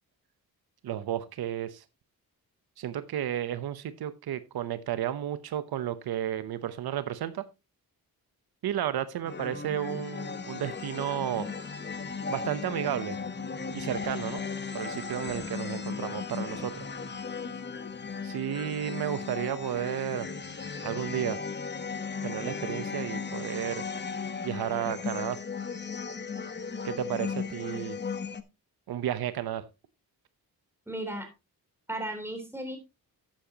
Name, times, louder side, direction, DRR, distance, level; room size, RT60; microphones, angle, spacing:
voice 1, 0.8-1.8 2.8-7.4 8.6-11.5 12.3-13.2 13.7-14.4 14.7-16.8 18.2-20.3 20.8-21.4 22.2-23.8 24.4-25.4 26.8-28.0 28.9-29.6, right 11 dB, 90° right, 0.8 m, -32 dB
sound 1, 9.2-28.4, left 5 dB, 30° left, 1.0 m, -36 dB
voice 2, 30.9-31.3 31.9-32.8, right 1 dB, 5° right, 3.5 m, -35 dB
11.5 x 9.0 x 2.8 m
cardioid pair, 100°, 36 cm